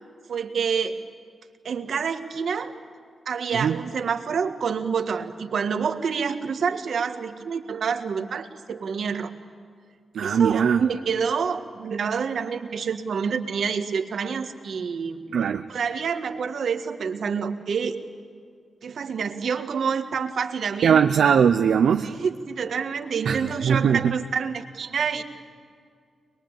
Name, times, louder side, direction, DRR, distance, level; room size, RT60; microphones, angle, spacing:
voice 1, 0.3-0.9 1.6-2.7 3.2-9.3 10.2-15.2 15.7-18.0 18.8-21.1 22.0-25.2, right 6 dB, 70° right, 6 dB, 1.6 m, -27 dB
voice 2, 10.1-10.8 15.3-15.6 20.8-22.1 23.2-24.1, right 7 dB, 90° right, 4 dB, 0.7 m, -20 dB
23.5 x 22.0 x 8.8 m, 2.2 s
wide cardioid pair, 110°, 0 cm